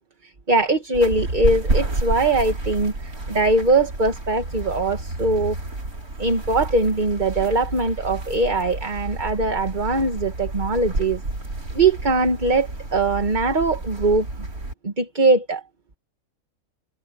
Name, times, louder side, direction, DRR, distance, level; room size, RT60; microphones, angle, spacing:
voice 1, 0.5-5.5 6.2-11.2 11.7-14.5 14.8-15.6, right 2 dB, 35° right, 1.7 m, -21 dB
sound 1, 0.9-14.7, right 2 dB, 85° right, 4.6 m, -30 dB
omnidirectional pair, 1.5 m